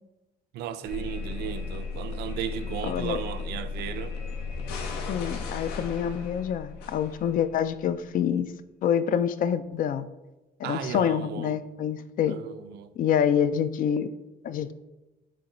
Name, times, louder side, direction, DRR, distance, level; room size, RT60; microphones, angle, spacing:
voice 1, 0.5-4.1 10.6-11.6 12.3-12.9, right 10 dB, 75° right, 0.5 m, -35 dB
sound 1, 0.9-7.7, left 4 dB, 80° left, 0.9 m, -35 dB
voice 2, 2.8-3.2 5.1-8.5 8.8-10.1 10.6-12.3 13.0-14.1 14.4-14.7, left 8 dB, 55° left, 0.4 m, -26 dB
7.4 x 3.1 x 4.3 m
cardioid pair, 110°, 17 cm